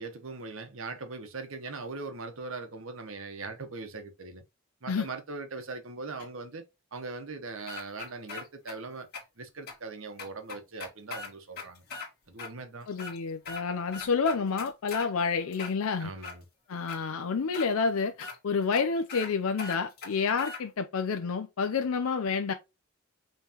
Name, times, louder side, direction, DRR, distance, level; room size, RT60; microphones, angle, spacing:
voice 1, 0.0-4.4 4.8-6.7 6.9-9.1 9.4-11.8 12.3-12.9 16.0-16.5, right 3 dB, 65° right, 1.0 m, -40 dB
sound 1, 7.7-8.8 9.1-9.2 9.7-9.8 10.2-12.1 12.4-12.5 12.9-13.6 13.9-15.1 15.5-16.4 16.9-17.0 17.5-17.7 18.2-18.4 18.7-18.8 19.1-19.3 19.6-20.6, left 4 dB, 45° left, 1.7 m, -40 dB
voice 2, 12.9-16.1 16.7-22.5, left 5 dB, 80° left, 0.5 m, -29 dB
5.5 x 3.2 x 2.9 m
head